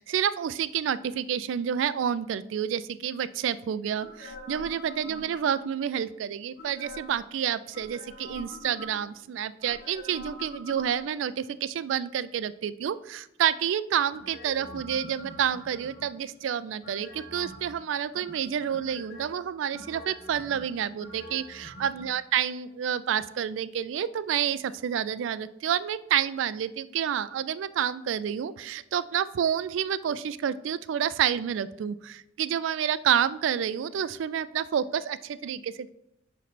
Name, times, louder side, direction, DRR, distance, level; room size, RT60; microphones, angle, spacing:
voice 1, 0.0-35.9, right 9 dB, 80° right, 16 dB, 0.3 m, -29 dB
sound 1, 4.0-5.8 6.6-7.3 7.7-9.2 9.6-11.3 14.1-16.2 16.8-17.7 18.1-19.3 19.7-22.1 22.4-22.5, equal, 55° left, 1.2 m, -44 dB
9.2 x 3.1 x 4.2 m, 0.84 s
head